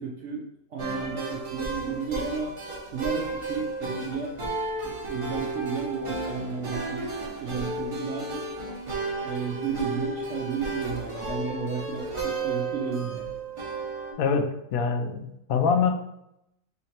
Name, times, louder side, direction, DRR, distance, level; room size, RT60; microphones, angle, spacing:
voice 1, 0.0-2.5 2.9-4.4 4.8-7.1 7.4-8.4 9.2-13.3, right 5 dB, 65° right, -2 dB, 0.7 m, -33 dB
sound 1, 0.8-14.1, right 3 dB, 30° right, 0.6 m, -33 dB
voice 2, 14.2-15.9, left 5 dB, 70° left, 6 dB, 0.9 m, -24 dB
4.0 x 3.1 x 2.8 m, 0.80 s
omnidirectional pair, 1.7 m